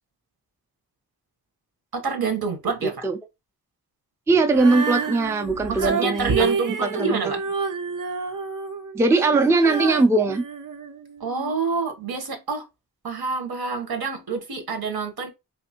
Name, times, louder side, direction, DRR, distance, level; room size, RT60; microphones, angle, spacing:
voice 1, 1.9-2.9 5.7-7.4 11.2-12.6 13.0-15.3, right 5 dB, 75° right, 1.1 m, -27 dB
voice 2, 2.8-3.2 4.3-6.5 6.8-7.3 8.9-10.4, right 3 dB, 10° right, 0.4 m, -20 dB
Female singing, 4.5-11.5, right 4 dB, 60° right, 0.6 m, -29 dB
3.3 x 2.6 x 2.8 m
wide cardioid pair, 75°, 37 cm